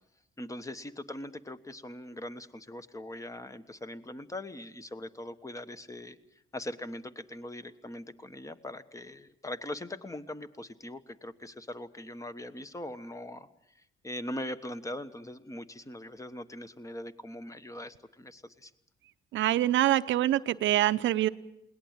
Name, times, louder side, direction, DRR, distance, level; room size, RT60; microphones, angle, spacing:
voice 1, 0.4-6.2 6.5-18.7, left 1 dB, 15° left, 11 dB, 1.3 m, -41 dB
voice 2, 19.3-21.3, right 13 dB, 70° right, 14 dB, 0.8 m, -25 dB
21.5 x 19.0 x 9.0 m, 0.81 s
cardioid pair, 95°, 20 cm